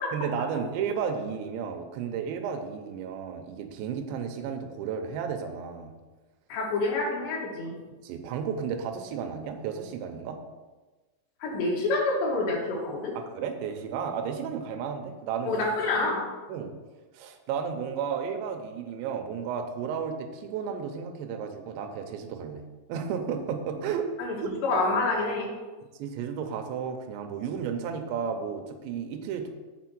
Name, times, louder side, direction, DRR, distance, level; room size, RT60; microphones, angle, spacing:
voice 1, 0.1-5.9 8.0-10.4 13.1-15.5 15.9-16.0 16.5-16.7 17.1-22.6 22.9-24.1 24.4-24.5 26.0-29.5, right 7 dB, 85° right, 5 dB, 2.9 m, -33 dB
voice 2, 6.5-7.8 11.4-13.1 15.5-16.2 24.2-24.4 24.6-25.5, left 2 dB, 70° left, -3 dB, 3.7 m, -27 dB
8.3 x 4.2 x 6.1 m, 1.2 s
omnidirectional pair, 5.2 m